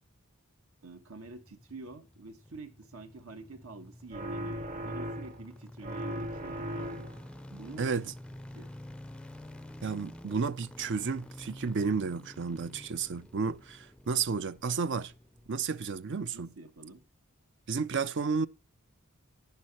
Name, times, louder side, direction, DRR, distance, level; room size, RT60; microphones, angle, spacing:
voice 1, 0.8-7.1 7.5-7.9 8.5-8.7 16.3-17.0, right 3 dB, 70° right, 1.5 m, -47 dB
sound 1, 1.0-16.2 16.4-16.5, left 1 dB, 5° left, 0.5 m, -50 dB
sound 2, 4.1-5.5 5.8-7.3, equal, 35° right, 0.9 m, -37 dB
voice 2, 7.8-8.1 9.8-15.1 15.5-16.5 17.7-18.5, right 5 dB, 55° right, 0.5 m, -32 dB
10.5 x 10.5 x 2.9 m
head